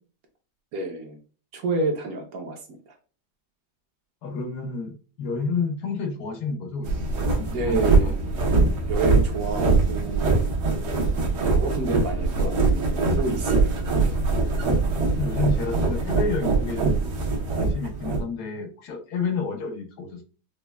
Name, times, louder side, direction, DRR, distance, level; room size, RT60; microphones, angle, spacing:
voice 1, 0.7-1.2 1.5-2.6 7.5-8.4 8.9-10.5 11.4-14.1, right 3 dB, 65° right, 3 dB, 1.1 m, -29 dB
voice 2, 4.2-8.1 15.2-20.2, left 4 dB, 75° left, 5 dB, 1.2 m, -30 dB
sound 1, 6.8-18.2, right 3 dB, 80° right, 1.5 m, -23 dB
5.1 x 2.2 x 2.2 m, 0.37 s
omnidirectional pair, 1.8 m